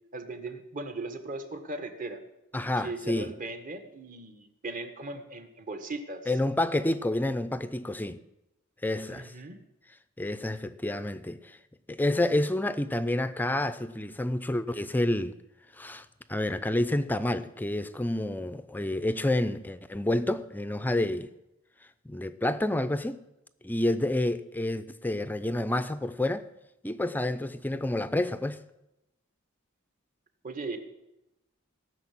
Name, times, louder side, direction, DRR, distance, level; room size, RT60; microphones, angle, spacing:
voice 1, 0.1-2.2 2.8-6.3 9.1-9.6 30.4-30.8, right 2 dB, 40° right, 1.5 m, -38 dB
voice 2, 2.5-3.3 6.3-8.2 8.8-9.3 10.2-11.6 11.9-15.3 15.8-21.3 22.1-23.2 23.6-26.5 26.8-28.6, left 1 dB, 10° left, 0.5 m, -29 dB
17.5 x 6.7 x 8.6 m
head